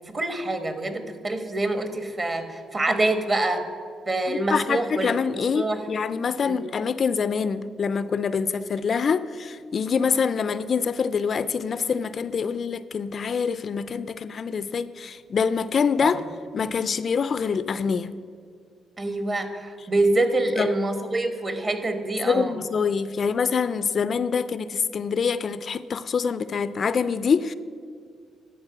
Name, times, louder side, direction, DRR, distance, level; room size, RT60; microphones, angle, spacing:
voice 1, 0.1-3.6 4.1-5.8 6.4-6.6 16.0-16.2 19.0-22.5, right 2 dB, 30° right, 8 dB, 1.1 m, -26 dB
voice 2, 4.3-16.2 16.5-18.1 20.6-20.7 22.2-27.5, left 6 dB, 50° left, 14 dB, 0.3 m, -25 dB
10.5 x 4.7 x 7.7 m, 2.1 s
cardioid pair, 90°, 0 cm